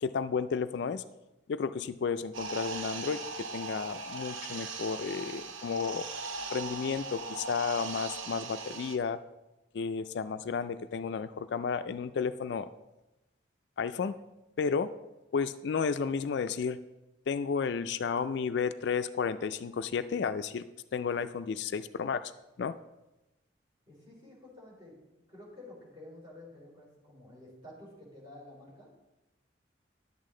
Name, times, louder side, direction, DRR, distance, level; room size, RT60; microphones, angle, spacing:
voice 1, 0.0-1.0 1.5-6.1 6.5-9.2 9.7-12.7 13.8-14.1 14.6-14.9 15.3-16.8 17.3-20.6 20.9-22.3 22.6-22.7, left 5 dB, 60° left, 12 dB, 0.3 m, -32 dB
sound 1, 2.3-9.0, right 3 dB, 90° right, 0.8 m, -39 dB
voice 2, 23.9-25.0 25.3-28.9, left 1 dB, 25° right, -4 dB, 3.5 m, -51 dB
11.0 x 8.3 x 3.8 m, 0.99 s
head